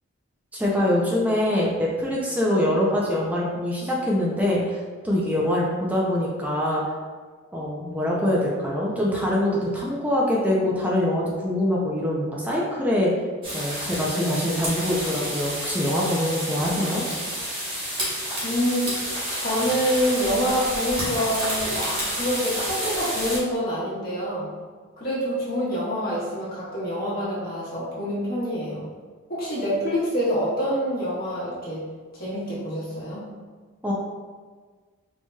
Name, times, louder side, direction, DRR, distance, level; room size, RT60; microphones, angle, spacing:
voice 1, 0.5-6.8 7.5-13.1 13.5-17.0 33.8-33.9, left 1 dB, 5° right, -4 dB, 0.4 m, -24 dB
sound 1, 13.4-23.4, equal, 25° right, 1.0 m, -30 dB
voice 2, 18.4-24.5 25.0-28.9 29.3-31.8 32.1-33.2, equal, 45° left, -8 dB, 1.3 m, -26 dB
4.4 x 2.8 x 2.3 m, 1.5 s
head